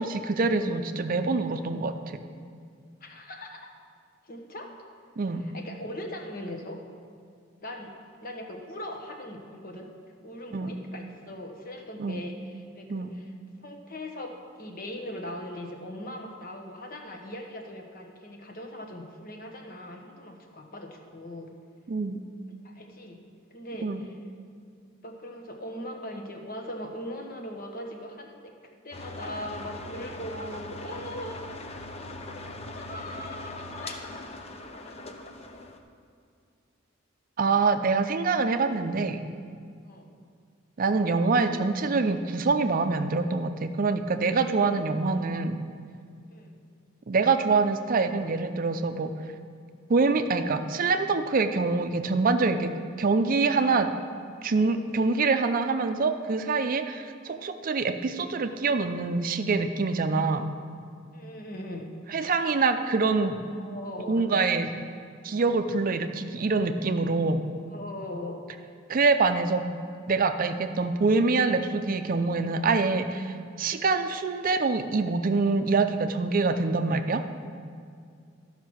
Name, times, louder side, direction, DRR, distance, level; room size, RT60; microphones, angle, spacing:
voice 1, 0.0-1.9 5.2-5.4 10.5-10.7 12.0-12.2 12.9-13.1 21.9-22.2 23.8-24.0 37.4-39.2 40.8-45.6 47.1-49.1 49.9-53.9 54.4-60.4 62.1-63.4 64.1-64.7 65.2-67.4 68.9-69.7 70.1-77.2, right 4 dB, 45° right, 8 dB, 0.5 m, -25 dB
voice 2, 3.0-3.7 4.2-4.7 5.4-6.8 7.6-7.9 8.2-9.9 10.2-13.3 13.6-21.5 22.6-23.2 23.5-24.1 25.0-28.5 28.8-31.5 32.6-34.0 34.5-35.1 38.1-38.2 39.9-40.2 46.3-46.5 61.1-61.9 63.5-64.6 67.7-68.4, left 1 dB, 50° left, 2 dB, 1.2 m, -40 dB
sound 1, 28.9-35.8, left 2 dB, 35° left, 0.7 m, -40 dB
12.5 x 5.6 x 6.3 m, 2.2 s
head